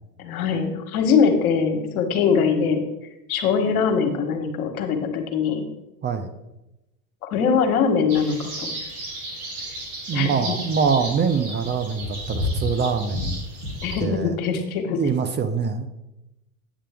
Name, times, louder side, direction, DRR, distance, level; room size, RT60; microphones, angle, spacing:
voice 1, 0.2-2.9 3.3-5.6 7.2-8.7 10.1-10.5 13.8-15.1, left 6 dB, 75° left, 6 dB, 1.3 m, -22 dB
voice 2, 6.0-6.3 10.1-13.4 14.0-14.3 15.0-15.9, right 6 dB, 25° right, 9 dB, 0.7 m, -24 dB
sound 1, 8.1-14.0, equal, 80° right, 2.5 m, -32 dB
8.8 x 7.1 x 3.5 m, 0.94 s
hypercardioid pair, 95°, 44 cm